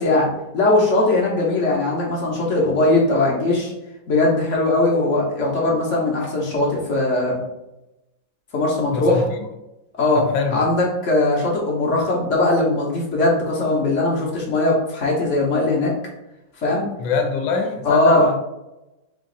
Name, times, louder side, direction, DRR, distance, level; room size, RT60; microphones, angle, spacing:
voice 1, 0.0-3.7 4.1-7.4 8.5-9.2 9.9-15.9 16.6-16.9 17.8-18.3, left 2 dB, 50° left, 1.0 m, -20 dB
voice 2, 8.9-9.5 10.1-10.6 17.0-18.4, left 4 dB, 85° left, 1.3 m, -23 dB
3.9 x 2.5 x 3.8 m
omnidirectional pair, 2.0 m